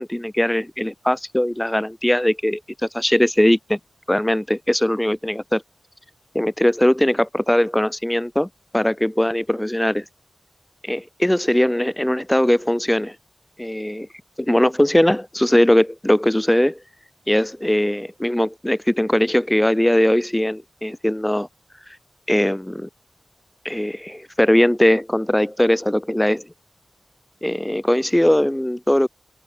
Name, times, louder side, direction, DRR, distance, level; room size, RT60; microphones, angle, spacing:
voice 1, 0.0-3.8 4.1-5.6 6.3-10.0 10.8-13.2 13.6-14.1 14.4-16.8 17.3-21.5 22.3-22.9 23.6-26.5 27.4-29.1, left 1 dB, 10° left, 2.3 m, -20 dB
open air
wide cardioid pair, 85°, 0 cm